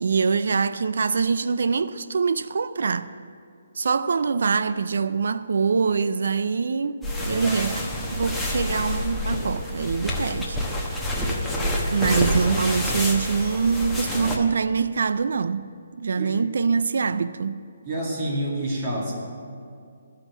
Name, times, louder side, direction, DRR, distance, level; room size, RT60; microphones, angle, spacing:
voice 1, 0.0-3.1 3.8-7.0 7.2-10.6 11.9-15.7 16.0-17.6, right 5 dB, 70° right, 0.4 m, -24 dB
sound 1, 7.0-14.4, left 1 dB, ahead, 1.0 m, -27 dB
voice 2, 7.3-7.6 11.9-12.1 16.2-16.4 17.9-19.1, right 1 dB, 30° right, 2.1 m, -28 dB
13.0 x 5.6 x 8.1 m
hypercardioid pair, 155°, 0 cm